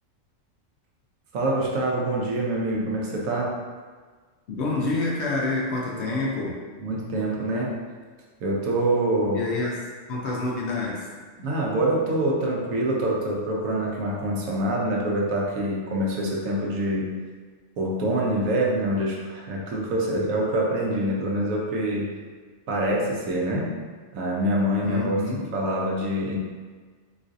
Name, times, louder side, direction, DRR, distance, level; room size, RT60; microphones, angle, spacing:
voice 1, 1.3-3.6 6.8-7.8 8.4-9.5 11.4-17.2 17.8-22.1 22.7-23.8 24.1-26.4, right 1 dB, 90° right, -3 dB, 1.1 m, -25 dB
voice 2, 4.5-6.6 9.3-11.1 24.8-25.4, left 3 dB, 65° left, -3 dB, 0.8 m, -28 dB
3.8 x 2.4 x 2.5 m, 1.5 s
omnidirectional pair, 1.4 m